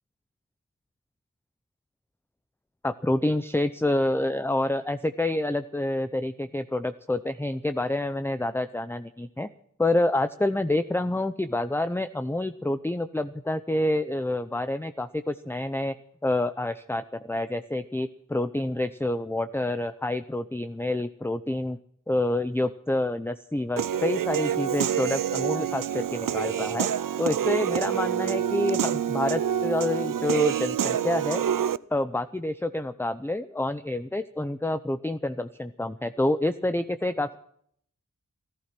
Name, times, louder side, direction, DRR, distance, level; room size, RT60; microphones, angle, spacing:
voice 1, 2.8-9.5 9.8-15.9 16.2-21.8 22.1-26.9 27.2-31.5 31.9-37.4, left 1 dB, 5° left, 11 dB, 0.6 m, -28 dB
Human voice / Piano, 23.8-31.8, right 9 dB, 85° right, 0.5 m, -27 dB
14.5 x 14.0 x 6.1 m, 0.65 s
wide cardioid pair, 70°, 32 cm